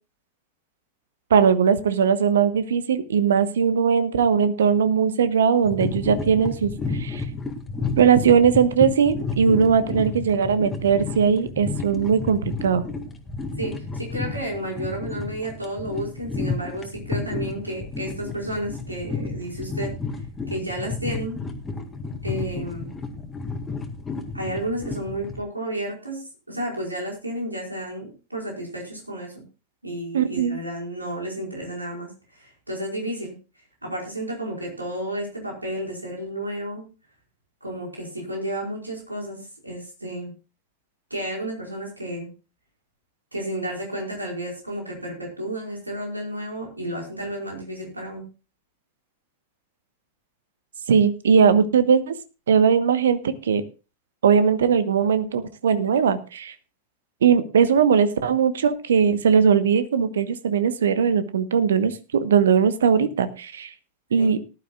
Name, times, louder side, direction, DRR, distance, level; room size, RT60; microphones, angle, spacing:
voice 1, 1.3-7.2 8.0-12.8 30.1-30.6 50.9-52.1 52.5-53.6 54.2-56.5 57.2-63.7 64.1-64.4, right 7 dB, 65° right, 13 dB, 1.1 m, -19 dB
sound 1, 5.6-25.4, left 3 dB, 15° left, 1.9 m, -32 dB
voice 2, 13.6-19.9 20.5-21.4 22.2-22.9 24.3-29.3 29.8-33.3 33.8-36.8 37.6-40.3 41.1-42.3 43.3-48.2 64.2-64.3, right 1 dB, 85° right, 0 dB, 5.0 m, -32 dB
19.0 x 11.5 x 2.4 m, 0.31 s
figure-of-eight pair, 90°, 0 cm